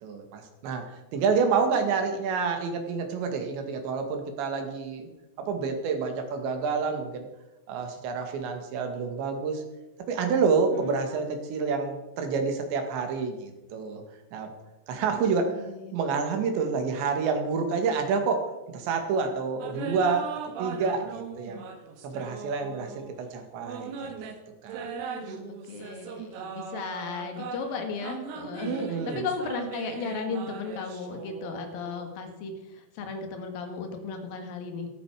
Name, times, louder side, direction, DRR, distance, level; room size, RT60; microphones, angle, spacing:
voice 1, 0.0-5.1 5.4-7.3 7.7-9.6 10.1-14.0 14.3-14.5 14.9-15.6 15.9-20.3 20.6-21.6 22.0-24.1 24.6-24.9 25.3-25.4 28.6-29.2, right 5 dB, 90° right, 5 dB, 4.2 m, -28 dB
voice 2, 1.6-1.9 10.7-11.0 15.0-16.0 24.9-34.9, left 4 dB, 60° left, 5 dB, 3.4 m, -36 dB
sound 1, 19.6-23.1 23.6-32.2, right 6 dB, 75° right, 3.4 m, -39 dB
14.5 x 13.5 x 5.0 m, 1.0 s
omnidirectional pair, 5.0 m